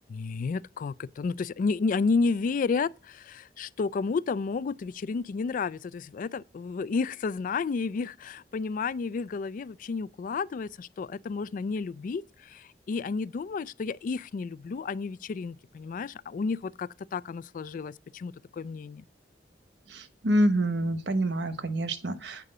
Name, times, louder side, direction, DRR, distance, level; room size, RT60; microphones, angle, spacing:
voice 1, 0.1-19.0, left 4 dB, 50° left, 0.3 m, -31 dB
voice 2, 19.9-22.4, right 1 dB, 75° right, 1.1 m, -27 dB
8.3 x 4.8 x 6.5 m
head